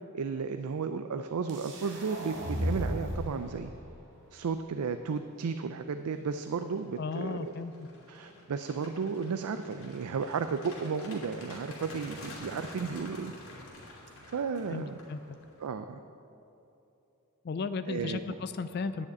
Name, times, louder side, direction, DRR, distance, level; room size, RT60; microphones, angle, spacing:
voice 1, 0.1-3.7 4.3-7.5 8.1-13.3 14.3-14.9 15.6-16.0 17.9-18.4, right 5 dB, 90° right, 9 dB, 0.4 m, -34 dB
sound 1, 1.5-3.5, equal, 55° right, 1.8 m, -34 dB
sound 2, 4.8-5.1 5.6-15.7, left 1 dB, 70° left, 3.0 m, -48 dB
voice 2, 7.0-7.7 14.7-15.2 17.4-19.1, left 4 dB, 45° left, 10 dB, 0.4 m, -35 dB
9.9 x 6.5 x 8.5 m, 2.9 s
head